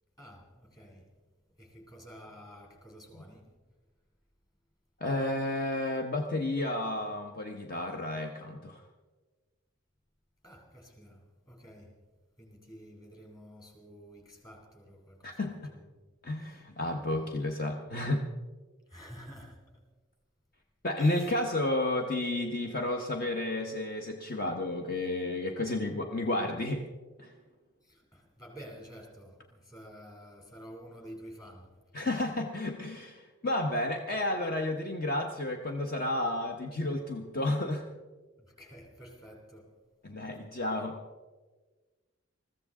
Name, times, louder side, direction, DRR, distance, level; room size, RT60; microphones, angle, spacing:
voice 1, 0.2-1.0 1.6-3.5 10.4-11.2 11.5-11.9 12.4-15.4 17.1-17.3 18.9-19.6 21.0-21.1 27.9-31.7 38.6-39.7, equal, 20° left, 2.7 m, -50 dB
voice 2, 5.0-8.8 15.2-15.7 16.2-18.3 20.8-26.9 27.2-27.3 31.9-37.8 40.0-41.0, left 1 dB, 45° left, 1.0 m, -31 dB
21.5 x 14.5 x 3.7 m
head